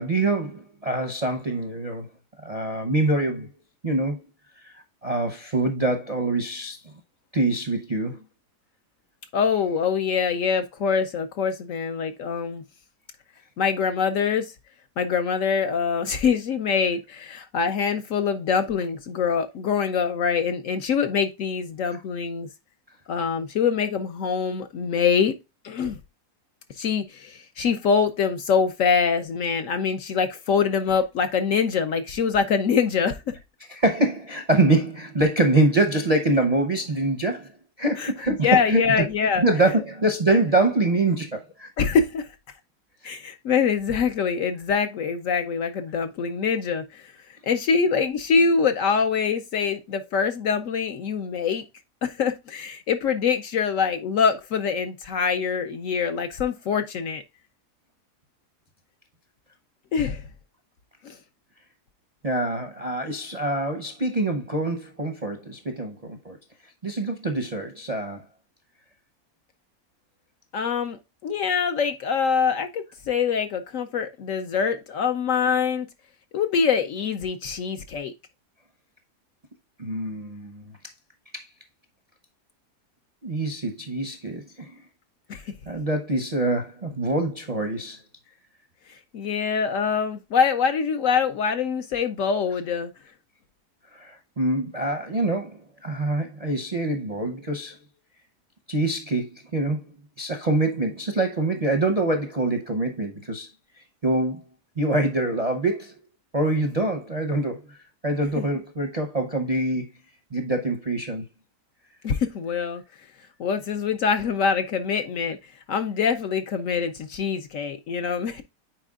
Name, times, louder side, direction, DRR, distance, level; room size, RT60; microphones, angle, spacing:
voice 1, 0.0-2.1 2.4-3.5 3.8-4.2 4.6-4.7 5.0-6.8 7.3-8.2 33.7-37.5 37.8-39.1 39.4-41.7 62.2-66.4 66.8-68.2 79.8-80.6 81.3-81.5 83.2-84.7 85.7-88.0 93.9-97.8 98.7-99.8 100.2-103.5 104.0-104.4 104.8-105.9 106.3-107.8 108.0-109.9 110.3-111.2, right 2 dB, 35° right, 0.6 m, -25 dB
voice 2, 9.3-12.6 13.6-14.5 15.0-22.5 23.1-25.3 25.6-26.0 26.8-33.2 38.0-39.4 41.8-42.3 43.0-47.1 47.4-51.6 52.0-57.2 59.9-60.3 61.0-61.2 70.5-71.0 71.2-75.9 76.3-78.1 85.3-85.4 89.1-92.9 108.4-108.5 112.0-112.8 113.4-115.4 115.7-118.4, left 6 dB, 65° left, 0.9 m, -24 dB
9.0 x 4.5 x 2.4 m
omnidirectional pair, 1.7 m